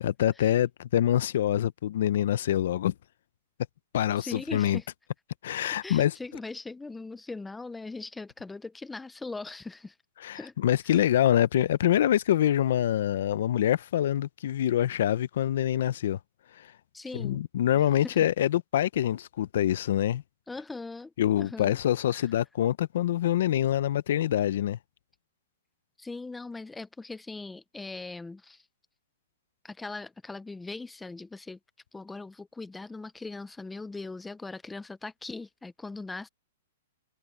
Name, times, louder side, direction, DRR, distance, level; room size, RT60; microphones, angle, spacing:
voice 1, 0.0-2.9 3.9-4.8 5.4-6.1 10.2-16.2 16.5-16.7 17.1-20.2 21.2-24.8, left 11 dB, 60° left, 0.6 m, -25 dB
voice 2, 4.2-4.9 5.8-9.9 10.3-10.5 10.9-11.0 16.9-17.4 18.0-18.2 20.5-21.8 26.0-28.6 29.6-31.6 31.9-36.3, left 3 dB, 5° left, 0.6 m, -40 dB
hypercardioid pair, 165°, 0 cm